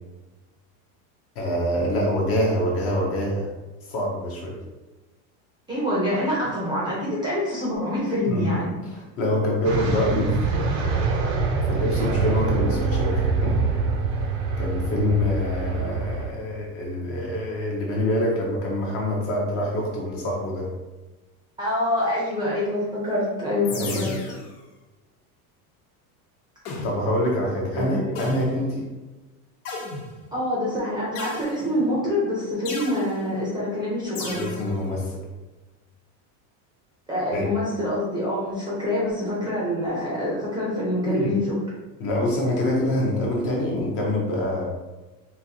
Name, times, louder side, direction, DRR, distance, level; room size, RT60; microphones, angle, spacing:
voice 1, 1.4-3.5 3.8-4.6 8.3-11.1 11.6-13.6 14.6-20.7 23.7-24.2 26.8-28.9 34.3-35.2 37.3-37.5 41.0-41.4 42.0-44.6, left 1 dB, 30° left, -2 dB, 0.6 m, -25 dB
voice 2, 5.7-8.8 21.6-24.1 27.7-28.1 30.3-34.5 37.1-41.6, left 1 dB, 10° right, -7 dB, 0.6 m, -26 dB
sound 1, 9.6-16.3, right 4 dB, 50° right, 0.6 m, -25 dB
sound 2, 12.5-14.9, right 1 dB, 75° right, 1.1 m, -39 dB
sound 3, 23.6-24.5 26.7-27.2 28.2-28.7 29.7-30.4 31.2-31.9 32.7-33.2 34.2-34.7, left 3 dB, 80° left, 1.1 m, -35 dB
4.1 x 2.6 x 2.7 m, 1.1 s
supercardioid pair, 165°, 44 cm